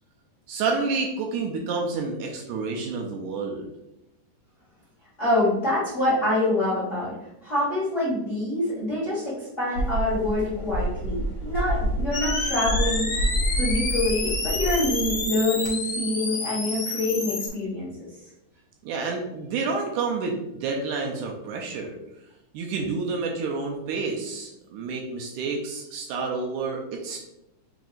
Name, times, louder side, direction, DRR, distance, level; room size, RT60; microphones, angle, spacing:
voice 1, 0.5-3.7 18.8-22.0 22.5-27.2, right 4 dB, 80° right, 1 dB, 2.0 m, -29 dB
voice 2, 5.2-7.1 7.4-17.9, left 1 dB, 80° left, -9 dB, 0.6 m, -26 dB
sound 1, 9.8-15.2, right 1 dB, 60° right, 1.3 m, -28 dB
sound 2, 12.1-17.5, left 3 dB, 50° left, 2.1 m, -29 dB
6.0 x 3.5 x 2.4 m, 0.88 s
omnidirectional pair, 3.9 m